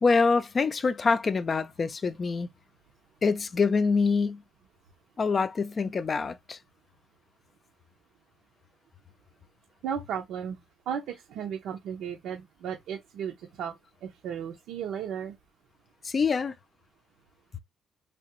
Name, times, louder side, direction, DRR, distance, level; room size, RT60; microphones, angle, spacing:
voice 1, 0.0-2.5 3.2-4.4 5.2-6.6 16.0-16.5, left 4 dB, 40° left, 0.5 m, -25 dB
voice 2, 9.8-10.6 10.9-13.8 14.0-15.4, right 8 dB, 85° right, 0.7 m, -35 dB
3.3 x 2.9 x 2.9 m
cardioid pair, 90°, 0 cm